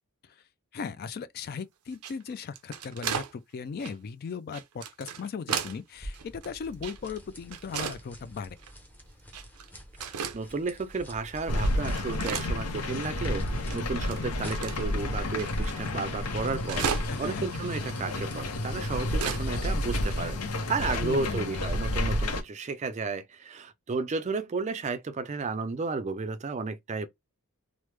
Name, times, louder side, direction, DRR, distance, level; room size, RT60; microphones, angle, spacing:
voice 1, 0.7-8.6 17.1-17.5 21.0-21.6, left 5 dB, 45° left, 0.3 m, -37 dB
sound 1, 1.9-3.3 3.8-4.0 4.5-5.8 6.1-7.2 7.5-8.0 8.6-8.7 9.3-9.7 10.0-10.4 10.9-11.0 11.4-13.0 13.3-13.4 13.7-14.9 15.4-15.5 15.8-15.9 16.0-17.3 17.6-17.7 18.4-19.4 19.7-19.8 20.1-20.2 20.9-21.1, right 7 dB, 80° right, 0.5 m, -35 dB
sound 2, 5.9-18.8, equal, 10° left, 0.6 m, -49 dB
voice 2, 10.3-13.5 13.7-27.1, right 4 dB, 30° right, 0.4 m, -33 dB
sound 3, 11.5-22.4, left 1 dB, 80° left, 0.7 m, -30 dB
3.0 x 2.0 x 3.3 m
head